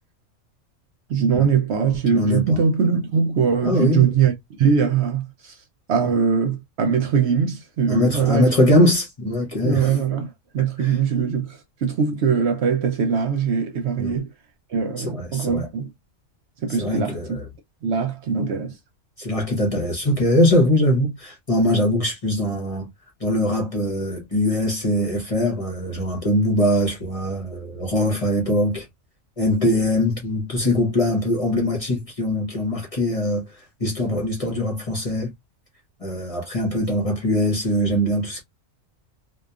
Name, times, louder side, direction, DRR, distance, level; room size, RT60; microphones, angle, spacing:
voice 1, 1.1-5.6 5.9-8.5 9.6-14.3 14.7-15.9 16.6-17.4 17.8-18.8, right 6 dB, 65° right, 0.7 m, -22 dB
voice 2, 2.1-2.6 3.6-4.1 7.9-10.0 10.8-10.9 14.0-14.1 15.0-15.7 16.7-17.4 19.2-22.9 23.2-28.9 29.4-33.4 33.8-35.3 36.0-38.4, left 1 dB, 35° left, 0.7 m, -22 dB
2.7 x 2.2 x 2.2 m
omnidirectional pair, 1.3 m